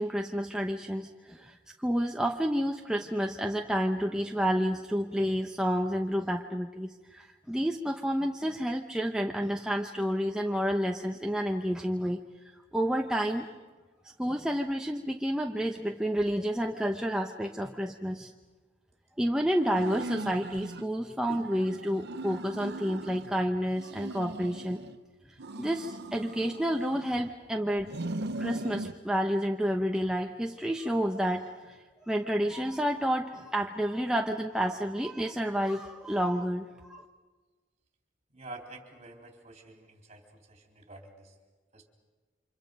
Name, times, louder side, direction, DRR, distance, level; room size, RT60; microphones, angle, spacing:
voice 1, 0.0-12.2 12.7-13.5 14.2-18.3 19.2-24.8 25.6-27.9 28.4-31.8 32.0-37.0, equal, 5° right, 2 dB, 0.8 m, -30 dB
sound 1, 19.6-20.9 21.3-23.3 23.7-25.0 25.4-27.3 27.8-29.0, right 2 dB, 60° right, 0.8 m, -39 dB
voice 2, 38.3-41.4 41.7-41.9, right 2 dB, 35° right, 2 dB, 3.6 m, -48 dB
29.5 x 26.0 x 5.3 m, 1.3 s
head